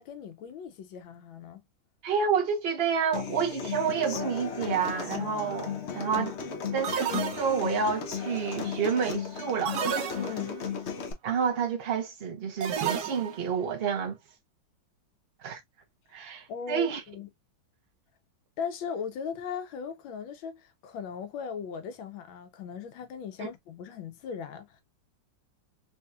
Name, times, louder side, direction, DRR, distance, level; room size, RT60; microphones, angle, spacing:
voice 1, 0.0-1.6 10.1-10.6 16.5-17.3 18.6-24.8, left 6 dB, 90° left, 1.6 m, -38 dB
voice 2, 2.0-6.3 6.7-9.8 11.2-14.2 15.4-15.6 16.1-17.0 23.4-23.5, right 6 dB, 45° right, 0.8 m, -29 dB
Human voice / Acoustic guitar, 3.1-11.1, left 6 dB, 75° left, 0.6 m, -35 dB
sound 1, 4.8-5.2 6.8-7.9 9.6-10.7 12.6-13.5, right 8 dB, 65° right, 1.2 m, -32 dB
4.1 x 2.7 x 2.3 m
omnidirectional pair, 2.1 m